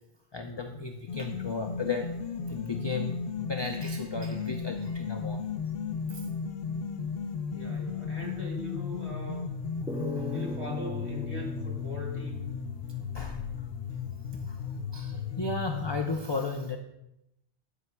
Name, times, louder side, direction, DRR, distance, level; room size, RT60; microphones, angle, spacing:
voice 1, 0.3-2.2 2.5-5.5 6.1-6.2 10.1-10.4 13.0-13.7 14.5-14.6 14.9-16.8, left 3 dB, 35° left, 4 dB, 0.5 m, -35 dB
sound 1, 1.1-16.1, left 6 dB, 70° left, 0.8 m, -35 dB
voice 2, 7.5-9.5 10.2-12.4, equal, 25° right, -4 dB, 2.6 m, -40 dB
sound 2, 9.9-13.3, left 1 dB, 5° right, 0.8 m, -40 dB
9.9 x 9.4 x 2.2 m, 0.86 s
omnidirectional pair, 1.1 m